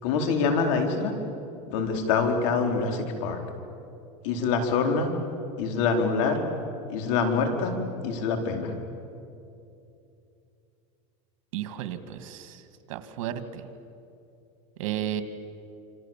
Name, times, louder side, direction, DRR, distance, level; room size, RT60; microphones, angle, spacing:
voice 1, 0.0-1.1 1.7-3.4 4.2-5.1 5.6-6.4 6.9-7.8 8.0-8.7, left 5 dB, 70° left, 3 dB, 4.4 m, -25 dB
voice 2, 11.5-12.6 12.9-13.7 14.8-15.2, right 11 dB, 75° right, 10 dB, 2.1 m, -33 dB
27.5 x 26.5 x 7.5 m, 2.7 s
supercardioid pair, 130°, 17 cm